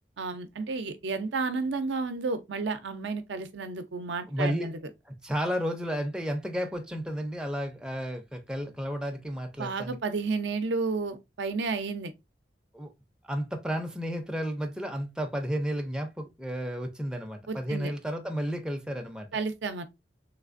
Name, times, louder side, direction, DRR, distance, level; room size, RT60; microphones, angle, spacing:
voice 1, 0.2-4.8 9.6-12.1 17.5-17.9 19.3-19.8, right 4 dB, 80° right, 0.5 m, -31 dB
voice 2, 4.3-4.7 5.1-10.0 12.7-12.9 13.2-19.3, equal, 5° right, 0.4 m, -32 dB
3.2 x 3.2 x 2.4 m
head